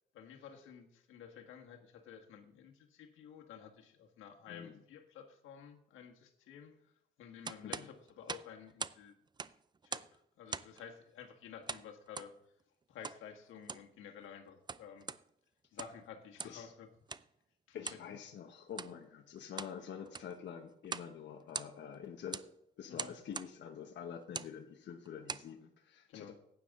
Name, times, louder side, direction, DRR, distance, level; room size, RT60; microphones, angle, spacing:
voice 1, 0.1-6.7 7.2-9.2 9.8-12.3 12.9-15.1 15.7-16.9 17.7-18.1 22.9-23.1 26.1-26.3, left 8 dB, 85° left, 3 dB, 1.6 m, -52 dB
voice 2, 4.5-4.8 7.6-7.9 16.4-16.7 17.7-22.4 22.8-26.3, left 8 dB, 65° left, 3 dB, 1.1 m, -47 dB
sound 1, 7.4-9.0 9.3-10.2 10.5-10.8 11.7-12.3 13.0-13.2 13.6-13.9 14.5-15.2 15.6-16.0 16.4-16.6 17.1-17.3 17.8-18.1 18.7-18.9 19.4-19.8 20.1-20.4 20.8-21.1 21.4-21.9 22.3-22.5 23.0-23.5 24.2-24.5 25.1-25.5, right 5 dB, 20° right, 0.4 m, -42 dB
15.0 x 9.6 x 3.8 m, 0.77 s
cardioid pair, 90°, 20 cm